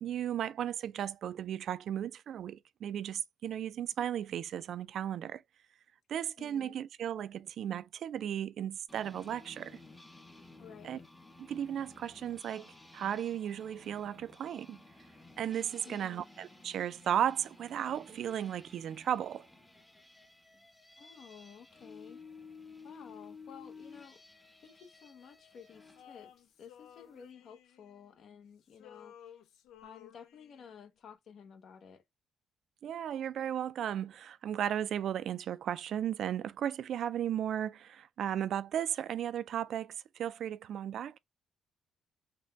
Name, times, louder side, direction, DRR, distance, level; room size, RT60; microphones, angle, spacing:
voice 1, 0.0-5.4 6.1-9.8 10.8-11.0 11.4-14.8 15.4-19.5 32.8-41.2, right 10 dB, 70° right, 0.3 m, -35 dB
voice 2, 6.4-6.8 10.6-11.1 15.8-16.2 21.0-22.2 22.8-24.2 24.6-29.4 29.8-32.0, left 7 dB, 65° left, 0.8 m, -53 dB
sound 1, 8.9-26.0, left 3 dB, 10° left, 0.8 m, -55 dB
Male singing, 26.0-28.4 28.7-30.8, left 9 dB, 85° left, 0.5 m, -56 dB
3.9 x 2.2 x 3.3 m
cardioid pair, 90°, 0 cm